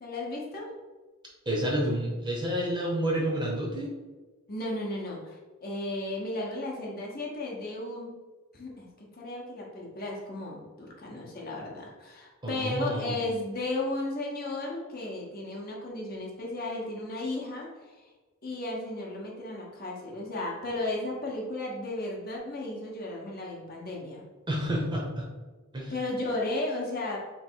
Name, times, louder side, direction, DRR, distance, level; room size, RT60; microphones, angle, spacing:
voice 1, 0.0-0.7 4.5-8.1 8.5-18.0 18.4-24.2 25.9-27.2, left 2 dB, 45° left, -2 dB, 0.9 m, -34 dB
voice 2, 1.5-3.9 12.4-13.1 24.5-25.3 25.7-26.0, right 1 dB, 20° right, -2 dB, 0.8 m, -29 dB
3.2 x 3.2 x 4.5 m, 1.3 s
head